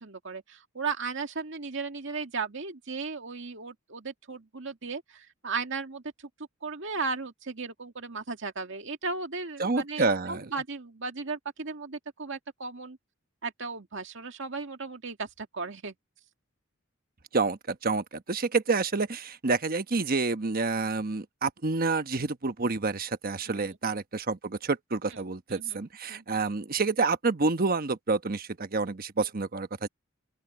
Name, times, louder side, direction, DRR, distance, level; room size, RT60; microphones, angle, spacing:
voice 1, 0.0-6.0 6.6-13.0 13.4-15.9 23.5-23.7 25.1-25.2 25.5-25.8 26.1-26.2 29.2-29.3, right 4 dB, 65° right, 2.2 m, -36 dB
voice 2, 9.6-10.5 17.3-29.9, right 3 dB, 45° right, 1.1 m, -28 dB
open air
head